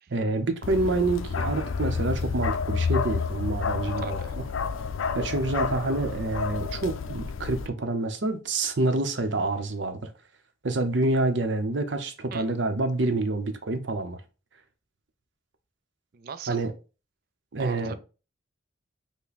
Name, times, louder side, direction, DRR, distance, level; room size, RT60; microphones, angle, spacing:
voice 1, 0.1-4.2 5.1-10.1 10.6-14.2 16.5-16.7 17.5-18.0, right 2 dB, 65° right, 0.7 m, -27 dB
Bark, 0.6-7.7, left 5 dB, 80° left, 0.4 m, -30 dB
voice 2, 4.0-4.4 12.3-12.5 16.1-16.6 17.6-17.9, right 6 dB, 45° right, 0.4 m, -40 dB
5.6 x 2.2 x 4.0 m
head